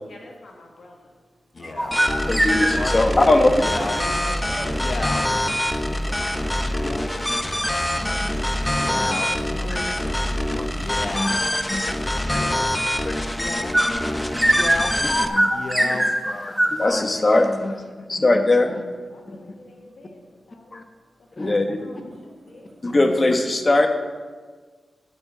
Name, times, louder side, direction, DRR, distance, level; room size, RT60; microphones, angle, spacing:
voice 1, 0.1-1.1 2.8-3.3 5.9-7.5 14.8-15.6 18.1-18.8 19.1-20.2 20.5-20.7 21.4-22.7, left 2 dB, 80° left, 0 dB, 1.5 m, -48 dB
Male speech man speaking, 1.5-2.0 2.6-2.9 3.5-4.0 4.7-5.2 6.0-6.3 6.7-7.1 7.6-8.1 8.6-9.3 10.6-11.6 12.2-12.7 13.3-13.8 14.4-14.9 15.4-16.1 16.7-17.3, left 3 dB, 60° left, 0.7 m, -33 dB
voice 2, 1.6-2.5 2.9-4.8 9.8-10.1 21.9-22.0, right 1 dB, 50° right, -2 dB, 2.9 m, -37 dB
sound 1, 1.8-3.1 13.7-16.9, right 1 dB, 5° right, 1.1 m, -22 dB
sound 2, 1.9-15.3, left 1 dB, 15° left, 0.7 m, -25 dB
voice 3, 2.3-3.5 5.3-5.4 7.2-7.6 8.0-8.3 8.9-10.0 10.5-10.6 11.1-11.4 11.7-11.9 12.3-12.5 13.0-13.1 15.0-15.6 15.8-18.8 19.3-19.4 20.7-20.8 21.4-21.8 22.8-23.9, left 2 dB, 40° left, 6 dB, 1.0 m, -22 dB
9.7 x 4.5 x 7.2 m, 1.5 s
cardioid pair, 60°, 0 cm